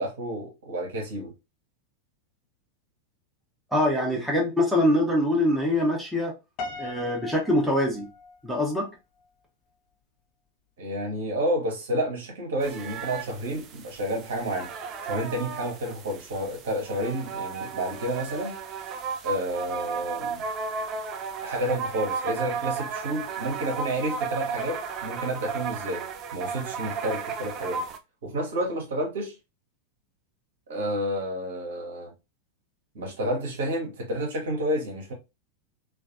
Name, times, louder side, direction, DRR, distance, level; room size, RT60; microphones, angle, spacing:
voice 1, 0.0-1.3 10.8-14.7 15.0-18.6 19.2-20.4 21.4-27.8 28.2-29.4 30.7-32.1 32.9-35.1, right 1 dB, 60° right, 0.8 m, -30 dB
voice 2, 3.7-6.3 6.8-8.1 8.4-8.9, left 1 dB, ahead, 0.8 m, -24 dB
Piano, 6.6-8.8, left 3 dB, 40° left, 0.6 m, -38 dB
sound 1, 12.6-28.0, right 5 dB, 35° right, 0.4 m, -34 dB
2.4 x 2.3 x 2.5 m
figure-of-eight pair, 90°, 0 cm